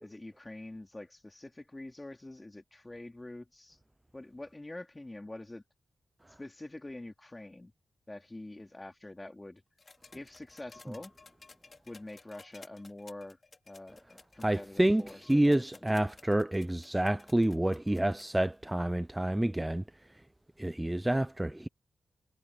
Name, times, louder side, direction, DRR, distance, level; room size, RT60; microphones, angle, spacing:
voice 1, 0.0-3.8 4.1-5.6 6.4-7.7 8.1-9.6 10.1-11.1 11.8-13.4 13.7-16.0, left 2 dB, 15° left, 2.7 m, -46 dB
sound 1, 9.8-18.5 19.7-19.8, left 3 dB, 35° left, 3.2 m, -57 dB
voice 2, 14.4-15.0 15.3-19.8 20.6-21.7, right 1 dB, 10° right, 0.4 m, -28 dB
wide cardioid pair, 155°, 0 cm